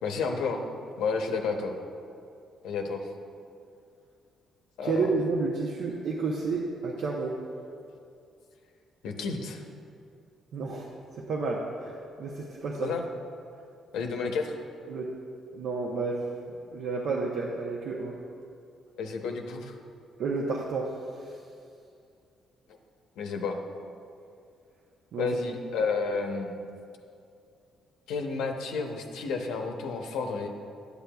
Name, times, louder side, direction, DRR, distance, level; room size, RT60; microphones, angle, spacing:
voice 1, 0.0-0.7 1.0-1.7 2.6-3.1 4.8-5.0 9.0-9.6 12.8-13.0 13.9-14.5 19.0-19.7 23.2-23.6 25.2-26.5 28.1-30.5, left 4 dB, 90° left, 3 dB, 0.7 m, -31 dB
voice 2, 4.8-7.4 10.5-10.9 11.2-13.0 14.9-15.1 15.5-16.3 16.7-18.2 20.2-21.3 25.1-25.3 25.8-25.9, right 4 dB, 75° right, -2 dB, 0.6 m, -31 dB
10.0 x 8.2 x 2.3 m, 2.4 s
cardioid pair, 90°, 0 cm